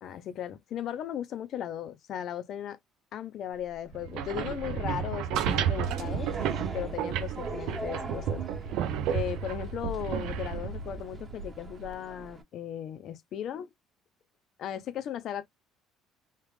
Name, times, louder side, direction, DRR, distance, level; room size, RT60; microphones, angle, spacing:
voice 1, 0.0-2.8 3.1-6.3 6.7-8.4 9.1-13.7 14.6-15.5, left 10 dB, 55° left, 0.6 m, -37 dB
sound 1, 3.9-11.9, right 8 dB, 75° right, 0.5 m, -32 dB
sound 2, 5.8-12.4, right 3 dB, 25° right, 1.3 m, -43 dB
3.3 x 2.4 x 3.1 m
cardioid pair, 130°, 0 cm